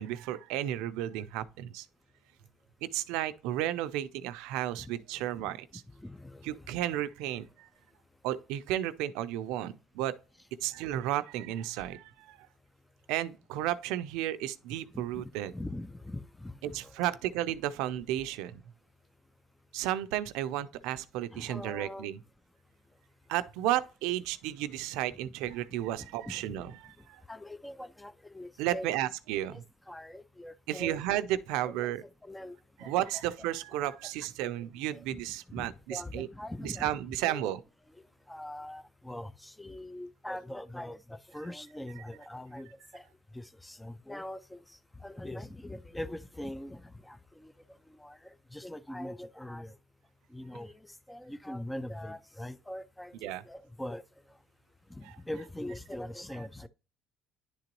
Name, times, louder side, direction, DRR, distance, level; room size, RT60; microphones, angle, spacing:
voice 1, 0.0-1.9 2.8-5.7 6.4-7.7 8.2-10.1 10.6-12.4 13.1-15.5 16.6-18.6 19.7-22.2 23.3-27.2 28.6-29.6 30.7-32.0 32.8-36.3 36.6-37.6 53.2-53.4, right 13 dB, 85° right, 0.5 m, -33 dB
voice 2, 6.0-6.6 14.9-17.1 21.3-22.1 25.3-25.4 25.9-26.7 27.3-28.9 29.5-31.0 31.6-33.2 34.5-35.2 35.5-37.0 37.3-37.5 38.3-43.0 43.3-47.5 48.0-49.7 50.3-54.0 54.9-56.7, left 1 dB, 5° left, 0.4 m, -43 dB
10.5 x 3.8 x 3.0 m
cardioid pair, 110°, 0 cm